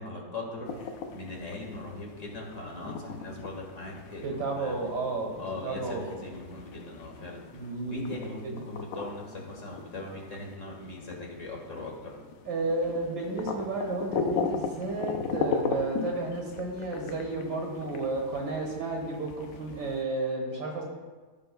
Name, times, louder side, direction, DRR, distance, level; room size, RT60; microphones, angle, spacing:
voice 1, 0.0-4.7 5.4-7.4 7.9-12.2, left 2 dB, 40° left, -1 dB, 1.8 m, -40 dB
sound 1, 0.7-20.0, left 5 dB, 70° left, 1.3 m, -38 dB
voice 2, 4.2-6.1 7.5-8.6 12.5-20.8, right 3 dB, 55° right, 1 dB, 2.0 m, -32 dB
16.0 x 6.8 x 2.3 m, 1.4 s
omnidirectional pair, 2.2 m